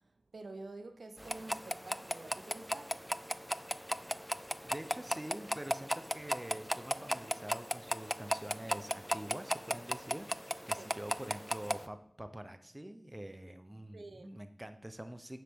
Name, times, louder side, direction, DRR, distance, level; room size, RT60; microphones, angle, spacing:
voice 1, 0.0-3.1 10.8-10.9 13.9-14.3, right 2 dB, 75° right, 0.8 m, -49 dB
sound 1, 1.2-11.9, equal, ahead, 0.4 m, -37 dB
voice 2, 4.6-15.4, right 1 dB, 20° right, 0.9 m, -46 dB
9.1 x 7.8 x 3.7 m
cardioid pair, 45°, 0 cm